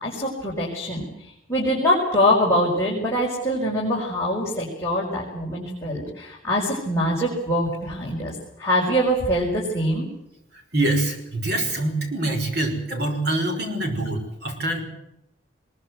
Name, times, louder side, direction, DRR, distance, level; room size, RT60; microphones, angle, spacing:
voice 1, 0.0-10.1, equal, 15° left, -5 dB, 5.1 m, -24 dB
voice 2, 10.5-14.8, right 2 dB, 55° right, 4 dB, 5.8 m, -25 dB
21.5 x 21.0 x 8.2 m, 0.84 s
head